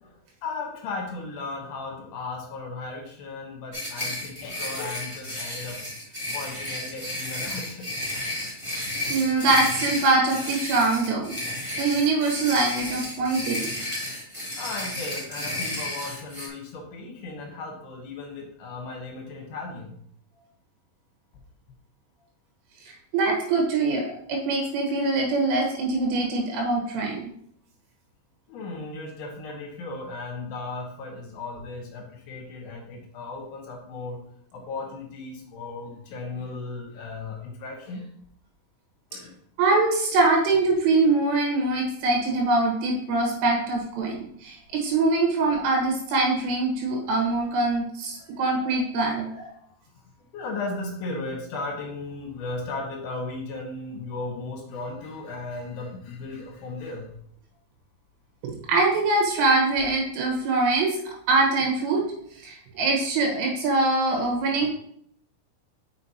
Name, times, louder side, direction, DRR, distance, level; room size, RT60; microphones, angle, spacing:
voice 1, 0.0-5.8 6.1-7.9 14.6-19.9 28.5-34.2 34.5-38.1 39.1-39.4 43.2-43.4 48.1-48.4 48.9-49.7 50.2-57.1, left 3 dB, 70° left, 0 dB, 2.8 m, -36 dB
sound 1, 3.7-16.5, left 1 dB, 35° right, 0.4 m, -32 dB
voice 2, 9.1-11.4 11.8-13.7 23.1-27.2 39.6-49.3 58.4-61.0 61.3-62.0 62.4-64.7, right 3 dB, 80° right, 0 dB, 3.9 m, -23 dB
6.6 x 6.2 x 2.9 m, 0.67 s
omnidirectional pair, 5.8 m